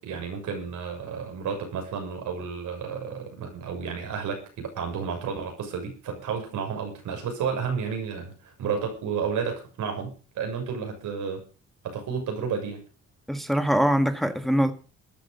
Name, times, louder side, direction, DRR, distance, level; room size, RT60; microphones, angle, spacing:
voice 1, 0.0-11.4 11.8-12.8, right 6 dB, 80° right, 6.8 m, -31 dB
voice 2, 13.3-14.7, equal, ahead, 1.8 m, -23 dB
14.0 x 11.0 x 6.8 m
cardioid pair, 90°, 30 cm